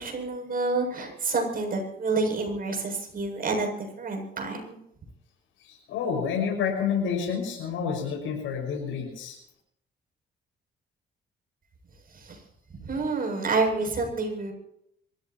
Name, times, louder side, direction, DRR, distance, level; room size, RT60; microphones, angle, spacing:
voice 1, 0.0-4.8 12.1-12.4 12.8-14.5, right 3 dB, 45° right, 2 dB, 7.7 m, -28 dB
voice 2, 5.6-9.4, left 6 dB, 90° left, 1 dB, 5.9 m, -29 dB
26.5 x 15.0 x 3.0 m, 0.74 s
cardioid pair, 90°, 20 cm